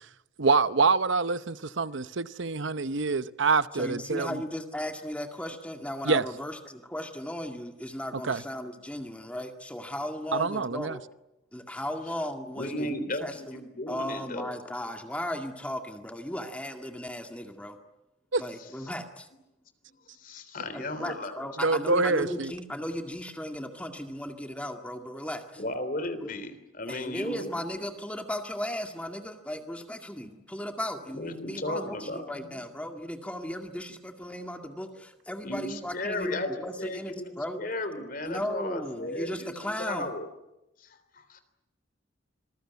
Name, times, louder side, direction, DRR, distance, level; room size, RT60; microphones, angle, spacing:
voice 1, 0.4-4.4 6.0-6.2 8.2-8.4 10.3-11.0 18.3-18.4 21.6-22.5, right 4 dB, 70° right, 0.9 m, -26 dB
voice 2, 3.7-11.0 11.5-13.6 13.9-17.8 18.4-19.3 20.7-25.6 26.2-26.3 26.9-37.7 38.0-40.1, equal, 5° left, 2.1 m, -36 dB
voice 3, 12.5-14.6 20.1-21.4 25.6-27.6 31.1-32.5 35.4-40.3 40.8-41.4, left 1 dB, 45° left, 3.4 m, -35 dB
27.0 x 21.5 x 9.5 m
head